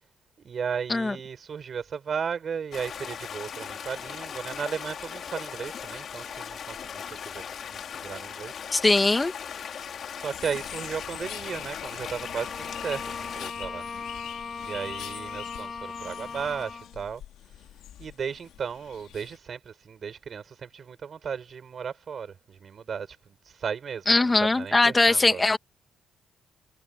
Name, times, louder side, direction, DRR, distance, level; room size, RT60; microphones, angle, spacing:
voice 1, 0.4-8.5 9.8-13.8 14.6-17.2 18.0-25.6, right 6 dB, 50° right, 6.8 m, -35 dB
Stream, 2.7-13.5, left 7 dB, 55° left, 3.5 m, -38 dB
voice 2, 8.7-9.3 24.1-25.6, left 2 dB, 20° left, 2.1 m, -21 dB
sound 1, 10.3-19.4, left 12 dB, 85° left, 2.9 m, -44 dB
Bowed string instrument, 12.1-17.0, left 5 dB, 40° left, 3.2 m, -38 dB
cardioid pair, 90°, 0 cm